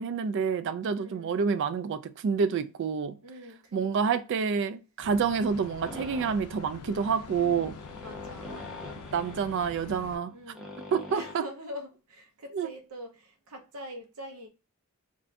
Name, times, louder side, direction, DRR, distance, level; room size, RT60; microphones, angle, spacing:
voice 1, 0.0-3.2 3.7-7.7 9.1-10.3 10.9-11.4 12.5-12.7, right 6 dB, 55° right, 0.3 m, -28 dB
voice 2, 1.0-1.4 3.2-4.2 5.8-6.1 7.3-8.7 10.3-10.8 11.1-14.5, left 1 dB, 75° right, 0.8 m, -44 dB
sound 1, 5.0-10.2, left 5 dB, 90° left, 0.4 m, -45 dB
sound 2, 5.8-11.3, left 2 dB, ahead, 0.5 m, -44 dB
2.5 x 2.5 x 3.3 m
head